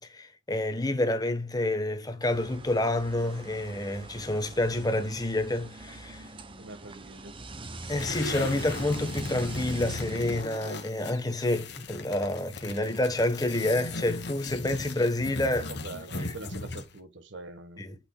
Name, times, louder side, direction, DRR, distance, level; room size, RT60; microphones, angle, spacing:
voice 1, 0.0-6.3 7.9-15.7 16.2-16.3 17.8-17.9, left 1 dB, 20° left, 1.0 m, -28 dB
sound 1, 2.2-10.4, right 2 dB, 25° right, 0.8 m, -43 dB
voice 2, 6.6-7.4 15.7-17.8, right 2 dB, 70° right, 1.3 m, -44 dB
sound 2, 7.9-17.0, left 2 dB, 60° left, 1.4 m, -38 dB
8.7 x 5.9 x 2.2 m
head